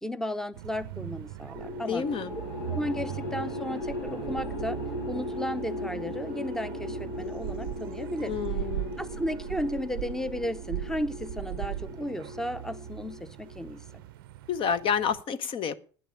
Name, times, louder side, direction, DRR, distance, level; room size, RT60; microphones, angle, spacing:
voice 1, 0.0-2.0 2.7-4.8 5.1-8.3 9.0-13.8, left 1 dB, 5° left, 14 dB, 0.8 m, -34 dB
sound 1, 0.5-15.2, right 14 dB, 75° right, 0.5 m, -39 dB
sound 2, 1.6-13.9, left 2 dB, 80° left, 3.6 m, -38 dB
voice 2, 1.9-2.3 8.3-9.0 14.5-15.8, left 7 dB, 45° left, 15 dB, 0.9 m, -29 dB
10.0 x 9.9 x 6.9 m, 0.42 s
hypercardioid pair, 65°, 12 cm